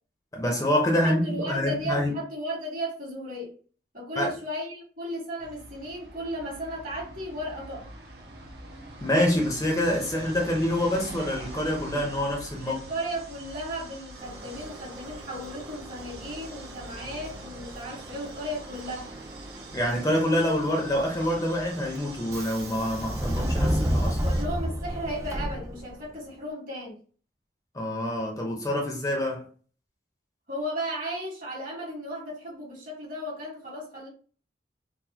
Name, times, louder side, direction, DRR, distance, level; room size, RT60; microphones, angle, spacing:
voice 1, 0.3-2.2 4.2-4.3 9.0-12.8 19.7-24.2 27.7-29.5, left 1 dB, 20° left, 0.7 m, -26 dB
voice 2, 1.0-3.5 3.9-7.9 12.6-19.1 24.2-27.0 30.5-34.1, equal, 50° right, 1.6 m, -35 dB
sound 1, 5.4-24.4, right 2 dB, 70° right, 0.9 m, -44 dB
Subway metro underground, 14.2-26.1, equal, 15° right, 0.4 m, -33 dB
3.9 x 2.2 x 2.8 m
head